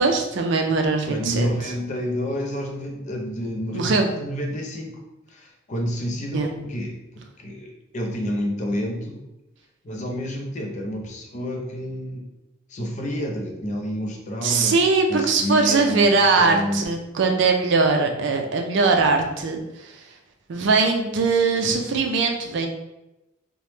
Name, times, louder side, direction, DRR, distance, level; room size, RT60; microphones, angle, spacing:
voice 1, 0.0-1.5 3.7-4.1 6.3-6.5 14.4-20.0 20.5-22.7, right 4 dB, 65° right, 3 dB, 0.4 m, -21 dB
voice 2, 1.1-5.0 5.3-9.2 9.8-12.3 12.7-14.8 15.1-16.9, equal, 40° left, 1 dB, 0.5 m, -29 dB
2.9 x 2.1 x 3.1 m, 0.94 s
head